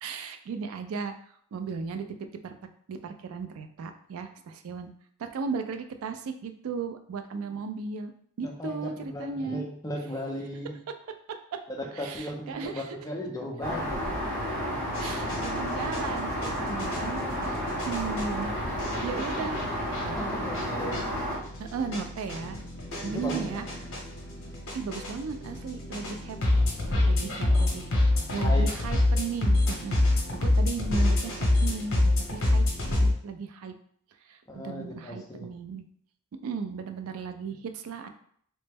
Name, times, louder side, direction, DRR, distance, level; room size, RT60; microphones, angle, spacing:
voice 1, 0.0-1.1 1.5-2.0 2.4-2.5 2.9-4.9 5.2-8.1 8.4-9.7 11.5-11.6 12.0-13.0 15.0-17.2 17.5-17.6 17.9-18.5 19.0-19.6 21.6-22.6 23.0-23.7 24.7-26.4 27.1-33.7 34.3-35.8 36.4-38.1, right 5 dB, 70° right, 7 dB, 0.3 m, -36 dB
voice 2, 8.4-10.8 11.7-14.0 19.1-19.5 20.0-21.0 23.0-23.6 27.5-27.7 28.2-28.7 34.5-35.5, equal, 15° left, 0 dB, 0.4 m, -36 dB
Aircraft, 13.6-21.4, equal, 40° right, 1.1 m, -31 dB
sound 1, 14.9-33.1, left 2 dB, 60° left, 0.8 m, -28 dB
3.1 x 2.1 x 3.3 m, 0.63 s
head